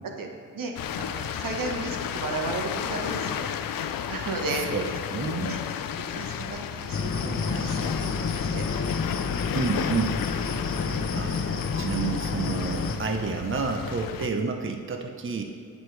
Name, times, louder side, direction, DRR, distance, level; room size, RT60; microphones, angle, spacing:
voice 1, 0.5-3.6 4.1-4.6 5.4-5.6 6.1-8.6, right 3 dB, 80° right, 2 dB, 1.3 m, -34 dB
sound 1, 0.8-14.3, left 9 dB, 85° left, 0.5 m, -33 dB
voice 2, 4.6-5.5 9.5-10.2 11.2-11.4 11.8-15.4, right 5 dB, 40° right, 4 dB, 0.8 m, -29 dB
sound 2, 6.9-13.0, left 4 dB, 40° left, 0.8 m, -29 dB
17.5 x 6.4 x 3.3 m, 2.5 s
cardioid pair, 90°, 33 cm